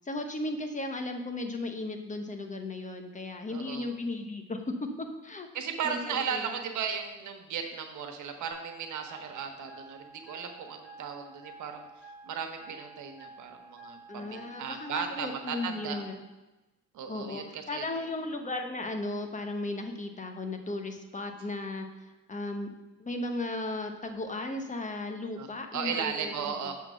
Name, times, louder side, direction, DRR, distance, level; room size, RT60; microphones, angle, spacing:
voice 1, 0.0-5.5 5.8-6.5 14.1-16.2 17.1-22.7 23.0-26.7, left 2 dB, 25° left, 5 dB, 0.9 m, -36 dB
voice 2, 3.5-3.9 5.5-11.9 12.2-16.0 16.9-18.1 25.4-26.7, right 7 dB, 75° right, 5 dB, 1.0 m, -36 dB
sound 1, 8.5-16.1, right 3 dB, 5° right, 2.8 m, -51 dB
7.1 x 3.8 x 6.2 m, 1.0 s
cardioid pair, 90°, 30 cm